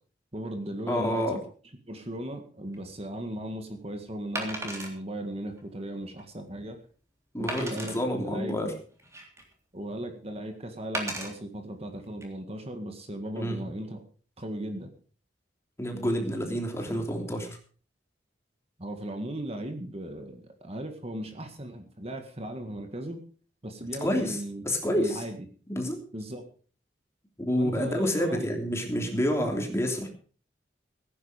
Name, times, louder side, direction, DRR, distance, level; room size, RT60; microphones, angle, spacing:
voice 1, 0.3-1.4 1.9-6.8 7.4-8.0 8.2-8.7 9.7-14.0 14.4-14.9 18.8-23.2 23.6-24.6 24.9-25.4 26.1-26.5 27.6-28.5, right 1 dB, 35° right, 6 dB, 1.8 m, -37 dB
voice 2, 0.9-1.4 7.3-8.7 13.3-13.6 15.8-17.5 24.0-24.4 24.6-25.2 25.7-26.0 27.5-30.1, equal, 15° left, 2 dB, 3.1 m, -28 dB
Wood, 2.7-2.9 4.3-4.9 5.6-5.7 6.2-6.3 7.5-8.0 8.7-9.5 10.9-11.3 12.0-12.2, right 1 dB, 15° right, 3.4 m, -35 dB
17.0 x 9.8 x 5.1 m, 0.41 s
head